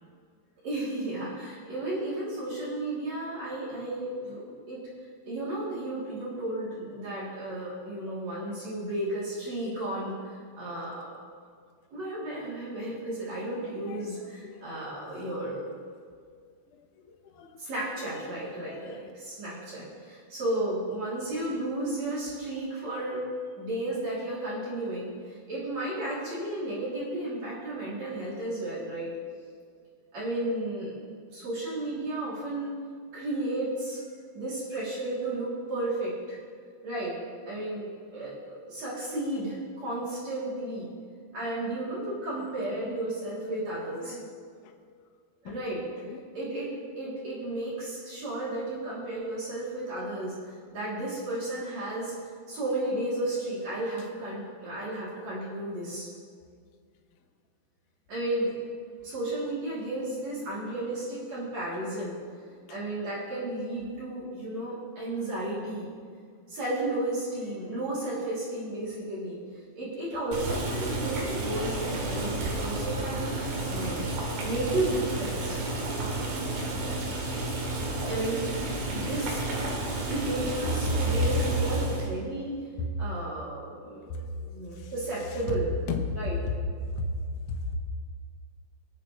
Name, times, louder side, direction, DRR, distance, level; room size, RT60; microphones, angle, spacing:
voice 1, 0.6-4.8 5.2-11.1 11.9-15.7 17.6-23.2 23.6-29.1 30.1-30.9 31.3-32.7 33.1-34.0 34.3-36.4 36.8-37.1 37.4-40.9 41.3-44.2 45.4-45.8 46.3-50.3 50.7-52.1 52.5-56.1 58.1-58.5 59.0-62.2 62.7-65.9 66.5-69.4 69.8-73.3 73.7-74.1 74.4-75.7 78.0-78.4 78.9-79.4 80.1-82.5 83.0-85.6 86.1-86.4, right 1 dB, 40° right, -9 dB, 4.1 m, -33 dB
voice 2, 7.0-7.6 7.9-8.2 8.5-8.6 10.6-10.7 13.5-15.2 16.7-17.6 18.2-19.1 21.1-21.5 42.4-43.2 44.0-44.3 44.6-44.7 45.4-45.6 46.0-46.2 62.5-62.8 64.1-64.2 66.5-66.6 80.9-81.6 82.8-82.9 83.8-84.4 84.7-85.6 85.9-87.8, left 2 dB, 80° left, 3 dB, 1.8 m, -35 dB
Boiling, 70.3-82.1, right 2 dB, 90° right, 4.3 m, -31 dB
22.0 x 7.6 x 3.3 m, 2.1 s
omnidirectional pair, 5.1 m